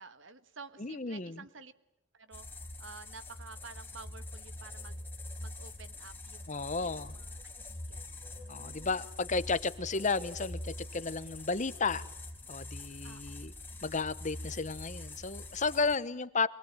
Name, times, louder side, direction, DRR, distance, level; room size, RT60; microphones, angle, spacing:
voice 1, 0.0-1.7 2.1-9.0 13.0-13.5, right 4 dB, 60° right, 12 dB, 1.6 m, -52 dB
voice 2, 0.8-1.4 6.5-7.1 8.5-12.0 12.5-13.5 13.8-16.5, left 4 dB, 35° left, 15 dB, 0.9 m, -33 dB
sound 1, 2.3-15.9, left 2 dB, 10° left, 4.0 m, -44 dB
sound 2, 6.6-12.3, left 6 dB, 20° right, 3.2 m, -60 dB
24.5 x 20.5 x 8.9 m, 0.85 s
head